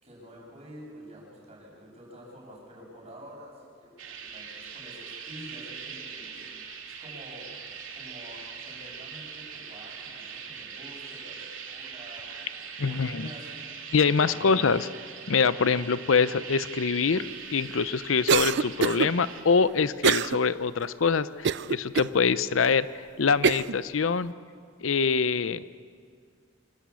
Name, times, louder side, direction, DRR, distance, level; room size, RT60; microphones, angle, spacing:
voice 1, 0.0-6.5 6.9-7.6 7.9-13.6 14.2-14.5, equal, 35° right, -3 dB, 7.6 m, -48 dB
sound 1, 4.0-19.4, right 6 dB, 85° right, 2.8 m, -41 dB
voice 2, 12.8-13.3 13.9-14.9 15.3-17.2 17.5-22.9 23.2-24.3 24.8-25.7, left 5 dB, 85° left, 15 dB, 0.6 m, -24 dB
Cough, 18.3-19.1 20.0-20.4 20.8-20.9 21.4-22.1 22.7-22.8 23.4-23.8, right 6 dB, 60° right, 0.5 m, -24 dB
25.5 x 14.0 x 8.4 m, 2.1 s
head